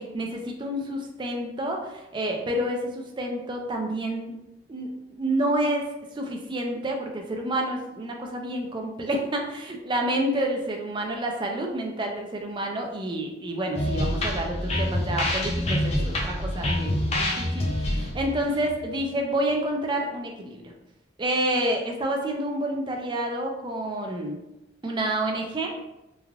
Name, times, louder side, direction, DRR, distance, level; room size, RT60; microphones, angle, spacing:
voice 1, 0.0-4.3 4.7-4.9 5.2-5.9 6.1-20.7 21.2-24.4 24.8-25.8, right 1 dB, 25° right, 1 dB, 0.4 m, -29 dB
sound 1, 13.7-19.4, left 1 dB, 35° left, 0.4 m, -27 dB
3.2 x 2.4 x 2.3 m, 0.92 s
head